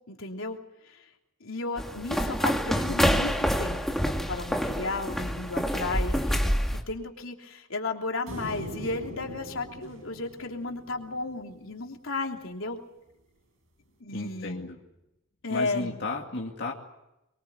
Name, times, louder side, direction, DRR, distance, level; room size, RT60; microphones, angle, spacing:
voice 1, 0.1-0.6 0.9-1.0 1.4-6.5 6.9-12.8 14.0-14.7 15.4-15.9, left 3 dB, 80° left, 2 dB, 3.2 m, -34 dB
sound 1, 1.8-6.8, equal, ahead, 2.3 m, -27 dB
sound 2, 8.3-11.6, equal, 85° right, 5.5 m, -42 dB
voice 2, 14.1-14.8 15.5-16.7, left 2 dB, 55° left, 0 dB, 2.4 m, -33 dB
24.5 x 23.0 x 8.1 m, 0.93 s
head